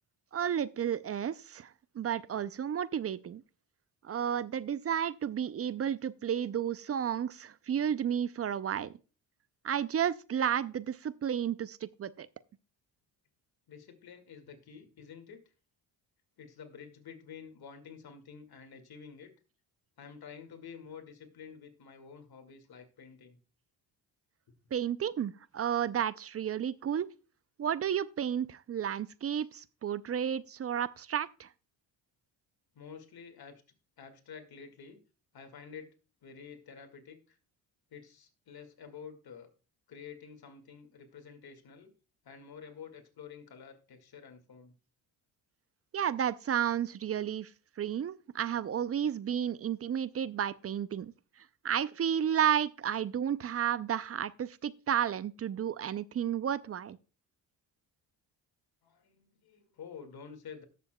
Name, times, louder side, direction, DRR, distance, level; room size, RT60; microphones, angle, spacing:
voice 1, 0.3-3.4 4.0-8.9 9.6-12.3 24.7-27.1 27.6-31.5 45.9-47.5 47.8-51.1 51.6-57.0, right 9 dB, 35° right, 0.4 m, -32 dB
voice 2, 13.7-15.4 16.4-19.3 20.0-23.4 32.8-33.6 34.0-35.0 35.3-35.9 36.2-37.4 37.9-39.5 39.9-41.9 42.2-44.7 58.8-60.6, left 6 dB, 55° left, 2.1 m, -49 dB
18.0 x 6.8 x 2.2 m
supercardioid pair, 70°, 45 cm